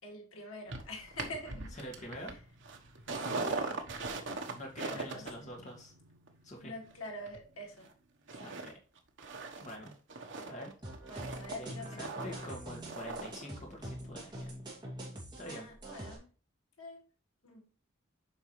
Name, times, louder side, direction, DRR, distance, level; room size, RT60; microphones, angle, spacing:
voice 1, 0.0-1.8 3.1-3.8 4.9-5.5 6.6-7.9 8.3-8.5 10.3-10.5 11.1-12.5 15.5-16.3 16.8-17.0 17.4-17.6, left 1 dB, 85° left, 2.5 m, -46 dB
sound 1, 0.7-7.9 8.3-8.7 9.0-13.5 13.7-13.8, right 3 dB, 60° right, 1.2 m, -41 dB
voice 2, 1.8-2.3 2.9-3.0 4.5-5.9 6.4-6.7 8.4-8.7 9.6-9.9 10.4-10.7 11.6-14.8 15.4-15.7, equal, 35° left, 1.9 m, -45 dB
sound 2, 10.8-16.2, right 1 dB, 20° right, 2.6 m, -45 dB
8.2 x 5.3 x 3.2 m
head